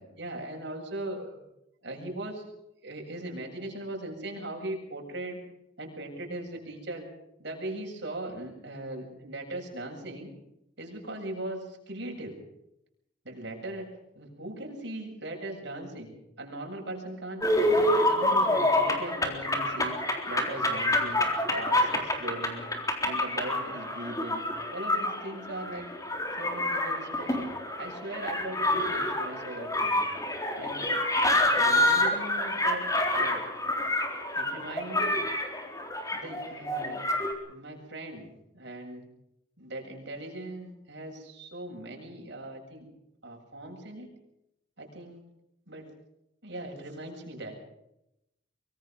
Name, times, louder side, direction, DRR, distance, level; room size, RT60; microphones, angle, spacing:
voice 1, 0.0-1.4 1.8-2.5 2.8-5.4 5.8-7.1 7.4-10.3 10.8-12.4 13.2-13.9 14.1-17.7 18.1-20.0 20.3-21.2 21.5-22.7 23.0-25.9 26.4-27.5 27.8-30.1 30.6-30.9 31.5-32.8 33.2-33.4 34.4-35.2 36.1-37.0 37.5-39.0 39.6-42.9 43.2-44.1 44.8-45.2 45.7-45.9 46.4-47.6, right 1 dB, 65° right, 1 dB, 7.7 m, -39 dB
sound 1, 17.4-37.3, left 1 dB, 20° left, 3.8 m, -27 dB
24.5 x 24.0 x 5.4 m, 0.84 s
head